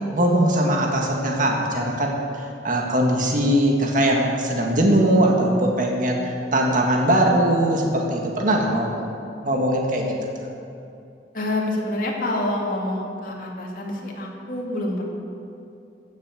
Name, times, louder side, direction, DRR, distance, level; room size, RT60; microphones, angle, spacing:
voice 1, 0.1-2.2 2.6-8.9 9.4-10.1, right 1 dB, 50° right, 0 dB, 1.9 m, -20 dB
voice 2, 11.3-15.1, left 1 dB, 50° left, -2 dB, 2.6 m, -27 dB
15.0 x 8.6 x 7.7 m, 2.6 s
head